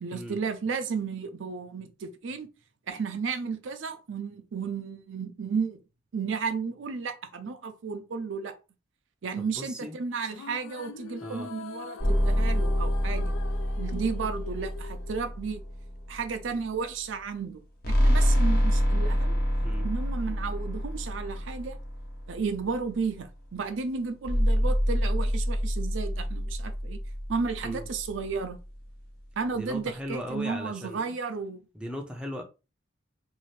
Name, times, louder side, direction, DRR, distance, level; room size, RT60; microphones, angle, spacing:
voice 1, 0.0-2.5 2.9-5.8 6.1-8.6 9.2-13.4 13.8-15.6 16.1-17.6 17.9-19.4 19.8-21.8 22.3-27.0 27.3-28.6 29.4-31.6, right 5 dB, 70° right, 0.5 m, -33 dB
voice 2, 9.4-10.0 11.2-11.5 19.6-19.9 27.6-27.9 29.5-31.1 31.7-32.4, equal, 5° right, 0.5 m, -37 dB
sound 1, 10.2-15.7, left 8 dB, 85° left, 0.4 m, -43 dB
sound 2, 12.0-16.4 17.8-22.7 24.2-28.6, equal, 50° left, 0.8 m, -27 dB
2.7 x 2.4 x 3.2 m
head